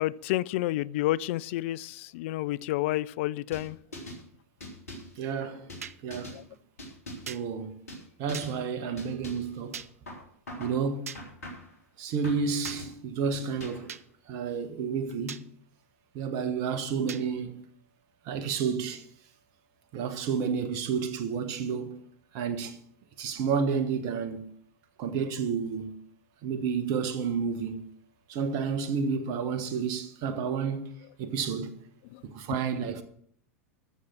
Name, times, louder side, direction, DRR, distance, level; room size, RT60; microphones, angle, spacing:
voice 1, 0.0-3.8 6.3-6.4 32.1-32.2, left 16 dB, 55° left, 0.4 m, -30 dB
sound 1, 3.5-4.2 4.6-5.2 5.7-6.4 6.8-7.4 7.9-8.0 8.3-8.6 9.0-9.5 10.1-10.8 11.1-11.8 12.2-12.9 13.3-13.9, left 1 dB, 75° left, 3.7 m, -42 dB
voice 2, 5.2-6.4 7.3-7.7 8.2-9.8 10.6-11.1 12.0-13.9 14.3-15.5 16.1-17.7 18.2-19.0 19.9-22.1 22.3-22.8 23.2-24.5 25.0-26.0 26.4-27.9 28.3-30.9 31.2-31.7 32.2-33.0, right 6 dB, 50° right, 1.5 m, -31 dB
sound 2, 5.8-6.0 7.3-7.4 8.3-8.5 9.7-9.9 11.1-11.2 12.6-12.8 13.9-14.0 15.3-15.4 17.1-17.2, right 8 dB, 75° right, 0.6 m, -39 dB
13.5 x 6.8 x 6.0 m
figure-of-eight pair, 90°, 8 cm